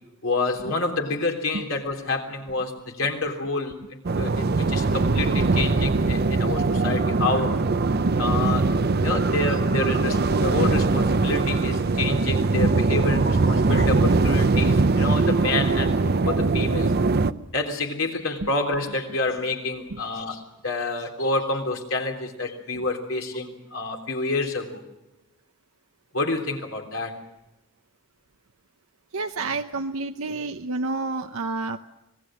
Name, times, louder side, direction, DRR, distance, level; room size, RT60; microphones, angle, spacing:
voice 1, 0.2-7.6 8.2-15.9 16.3-16.9 17.5-24.8 26.1-27.2, left 3 dB, 75° left, 2 dB, 3.5 m, -28 dB
sound 1, 4.0-17.3, right 3 dB, 50° right, 0.6 m, -21 dB
voice 2, 29.1-31.8, right 3 dB, 85° right, 6 dB, 0.8 m, -29 dB
26.0 x 19.5 x 6.3 m, 0.98 s
head